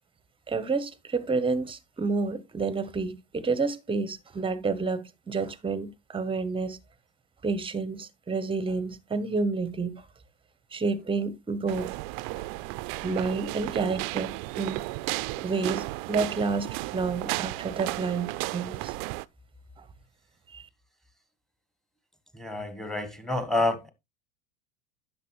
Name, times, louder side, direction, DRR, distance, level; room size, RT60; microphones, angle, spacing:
voice 1, 0.5-6.8 7.4-10.1 10.7-12.0 12.3-12.5 13.0-14.8 15.4-19.0 20.5-20.7, right 4 dB, 15° right, 1.0 m, -30 dB
sound 1, 11.7-19.3, right 21 dB, 55° right, 0.5 m, -34 dB
voice 2, 22.3-23.9, left 2 dB, ahead, 1.5 m, -28 dB
10.5 x 6.7 x 3.1 m
supercardioid pair, 110°, 36 cm